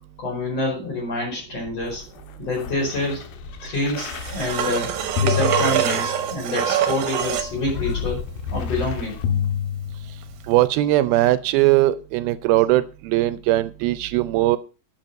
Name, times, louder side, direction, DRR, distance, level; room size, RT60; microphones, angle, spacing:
voice 1, 0.2-2.0 2.4-3.2 3.6-4.9 5.2-9.2, left 2 dB, 40° left, -3 dB, 5.8 m, -27 dB
sound 1, 1.5-6.4 7.2-10.5 11.2-11.3, left 8 dB, 75° left, 2.8 m, -29 dB
sound 2, 4.0-7.5 10.4-10.5, right 9 dB, 65° right, 2.1 m, -24 dB
voice 2, 10.5-14.6, right 16 dB, 80° right, 15 dB, 2.4 m, -19 dB
10.5 x 7.5 x 5.4 m, 0.33 s
omnidirectional pair, 4.4 m